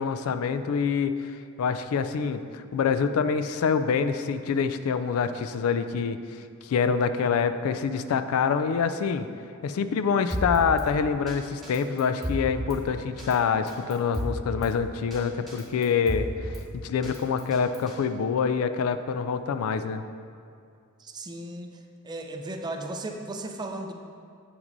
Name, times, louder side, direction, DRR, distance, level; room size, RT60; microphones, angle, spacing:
voice 1, 0.0-6.2 6.6-9.3 9.6-20.0, left 6 dB, 90° left, 10 dB, 0.3 m, -26 dB
Drum kit, 10.3-10.9 11.3-11.4 11.6-12.8 13.2-13.4 13.7-14.7 15.1-15.2 15.5-16.6 17.0-18.0, equal, ahead, 1.3 m, -33 dB
voice 2, 21.0-21.7 22.0-23.9, right 2 dB, 20° right, 4 dB, 0.4 m, -35 dB
7.9 x 5.9 x 2.6 m, 2.3 s
head